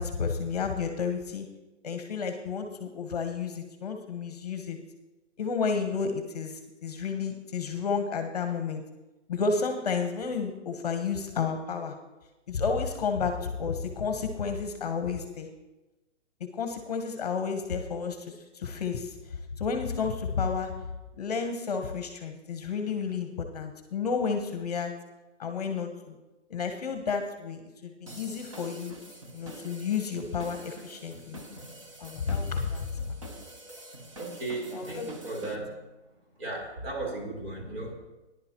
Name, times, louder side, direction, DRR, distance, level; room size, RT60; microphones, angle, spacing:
voice 1, 0.0-1.5 1.8-4.8 5.4-8.8 9.3-11.9 12.5-15.5 16.5-20.7 21.2-24.9 25.4-26.1 26.5-29.0 29.3-31.4 32.0-33.2 34.7-35.1, left 5 dB, 35° left, 6 dB, 1.0 m, -31 dB
sound 1, 28.1-35.6, right 1 dB, 25° right, 0.8 m, -46 dB
voice 2, 34.2-35.8 36.4-38.0, right 2 dB, 55° right, 0 dB, 3.9 m, -36 dB
19.0 x 11.0 x 2.9 m, 1.1 s
hypercardioid pair, 175°, 36 cm